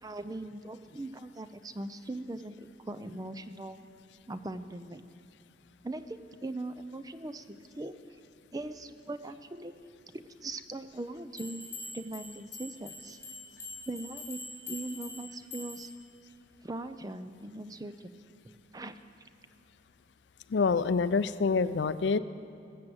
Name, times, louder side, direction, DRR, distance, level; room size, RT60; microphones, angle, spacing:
voice 1, 0.0-3.8 4.3-5.0 5.8-7.9 8.5-9.7 10.1-11.7 11.9-13.2 13.9-14.4 14.7-15.9 16.6-18.1 18.7-18.9, right 2 dB, 20° right, 11 dB, 0.5 m, -40 dB
sound 1, 11.4-16.0, left 2 dB, 15° left, 3.7 m, -44 dB
voice 2, 20.5-22.2, left 4 dB, 70° left, 15 dB, 0.4 m, -26 dB
20.0 x 7.6 x 7.7 m, 2.6 s
head